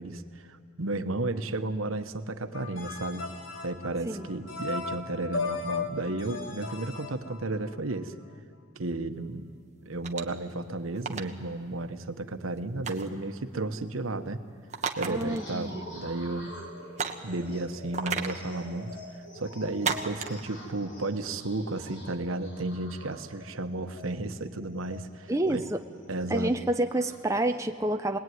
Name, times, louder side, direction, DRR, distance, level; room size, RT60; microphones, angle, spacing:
voice 1, 0.0-3.3 3.6-8.1 8.7-9.4 9.8-14.4 15.0-16.5 17.2-19.0 19.3-25.6 26.1-26.6, right 2 dB, 90° right, 8 dB, 1.2 m, -33 dB
sound 1, 2.5-7.9, left 4 dB, 75° left, 1.7 m, -36 dB
sound 2, 10.0-10.4 11.0-11.3 12.8-13.2 14.7-15.4 15.7-15.8 17.0-17.3 17.9-18.4 19.8-20.4, right 5 dB, 35° right, 1.3 m, -32 dB
voice 2, 15.1-15.8 25.3-25.8 26.3-28.2, right 1 dB, 15° right, 5 dB, 0.7 m, -28 dB
sound 3, 15.3-27.6, equal, 60° left, 4.0 m, -48 dB
25.5 x 20.0 x 9.4 m, 2.2 s
head